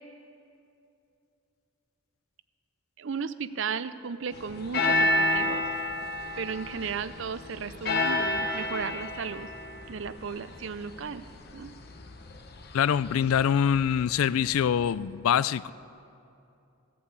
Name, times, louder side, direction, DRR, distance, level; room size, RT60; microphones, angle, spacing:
voice 1, 3.0-5.6 6.4-9.5 9.9-11.2 11.5-11.7, right 6 dB, 60° right, 14 dB, 0.5 m, -35 dB
sound 1, 4.3-14.9, left 1 dB, 50° left, 0.9 m, -31 dB
voice 2, 12.7-15.7, left 8 dB, 80° left, 19 dB, 0.3 m, -24 dB
16.5 x 8.5 x 8.2 m, 2.7 s
head